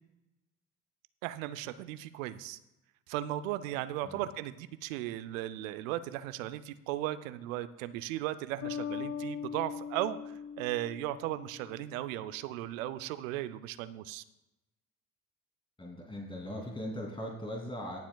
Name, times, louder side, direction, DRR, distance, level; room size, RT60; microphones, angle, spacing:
voice 1, 1.2-2.6 3.1-14.2, right 14 dB, 75° right, 14 dB, 0.6 m, -36 dB
Bass guitar, 8.6-12.2, left 7 dB, 45° left, 1.3 m, -40 dB
voice 2, 15.8-18.0, equal, 10° left, -1 dB, 2.8 m, -39 dB
21.0 x 7.2 x 2.3 m, 0.94 s
hypercardioid pair, 60°, 40 cm